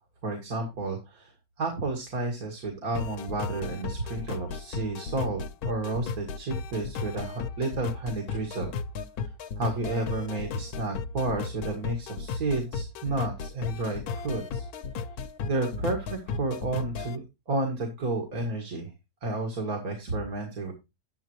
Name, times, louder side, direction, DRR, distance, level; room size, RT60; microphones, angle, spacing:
voice 1, 0.2-1.3 1.6-8.7 9.6-14.7 15.4-18.9 19.2-20.7, right 2 dB, 75° right, 3 dB, 2.3 m, -31 dB
sound 1, 3.0-17.2, left 5 dB, 85° left, 1.2 m, -35 dB
10.5 x 9.4 x 3.0 m, 0.24 s
omnidirectional pair, 1.6 m